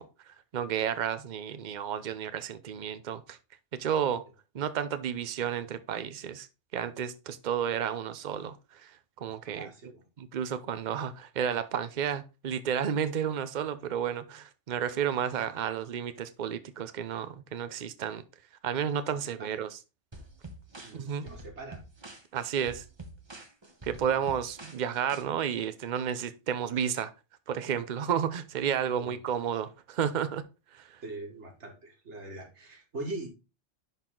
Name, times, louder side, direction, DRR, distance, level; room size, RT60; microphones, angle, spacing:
voice 1, 0.0-3.4 3.7-4.2 4.5-6.5 6.7-8.9 9.2-9.7 10.2-18.2 18.6-19.8 20.9-21.3 22.3-22.8 23.8-27.1 27.5-30.5 30.7-31.0, right 8 dB, 45° right, 0.7 m, -32 dB
voice 2, 9.5-10.1 10.8-10.9 19.1-19.6 20.8-21.8 24.0-24.1 28.9-29.2 31.0-33.3, right 2 dB, 70° right, 2.2 m, -42 dB
sound 1, 20.1-25.2, right 2 dB, 25° right, 1.1 m, -47 dB
10.5 x 4.1 x 3.8 m
omnidirectional pair, 1.2 m